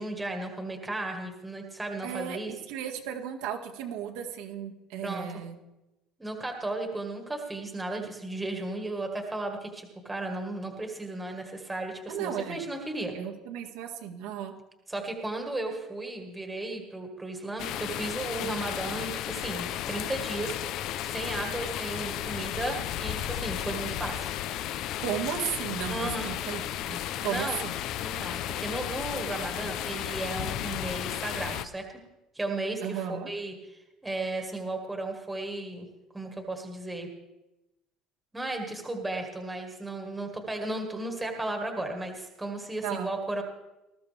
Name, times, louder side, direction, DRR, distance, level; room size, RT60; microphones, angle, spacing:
voice 1, 0.0-2.5 5.0-5.3 6.2-13.1 14.9-20.6 21.0-24.3 25.9-26.3 27.1-27.6 28.0-31.9 32.3-33.5 34.0-35.9 36.1-37.1 38.3-43.4, right 2 dB, 10° right, 3 dB, 1.7 m, -35 dB
voice 2, 2.0-5.6 12.1-12.6 13.1-14.5 25.0-27.8 32.8-33.3 42.8-43.1, right 9 dB, 80° right, 1 dB, 1.9 m, -35 dB
sound 1, 17.6-31.6, left 12 dB, 50° left, 0.5 m, -34 dB
19.5 x 14.0 x 3.4 m, 0.96 s
cardioid pair, 170°, 0 cm